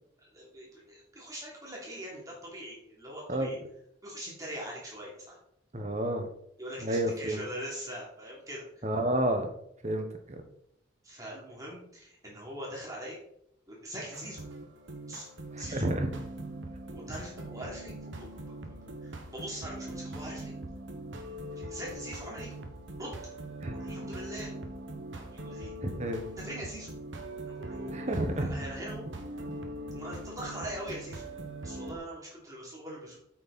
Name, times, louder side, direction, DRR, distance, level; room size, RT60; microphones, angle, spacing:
voice 1, 0.2-3.6 4.0-5.4 6.6-8.8 11.0-13.2 13.7-14.4 15.1-15.3 15.6-15.9 16.9-18.7 19.0-20.5 21.1-22.5 23.0-23.2 23.7-24.5 25.1-25.7 26.4-26.9 27.5-29.0 29.9-31.2 31.6-33.2, equal, 20° right, -4 dB, 3.1 m, -42 dB
voice 2, 5.7-6.3 6.8-7.4 8.8-9.5 9.8-10.4 15.5-16.1 23.6-23.7 25.8-26.3 27.9-28.5, right 1 dB, 35° right, 5 dB, 1.2 m, -30 dB
sound 1, 14.1-32.0, right 1 dB, 80° right, 1.3 m, -41 dB
8.2 x 6.5 x 4.2 m, 0.72 s
head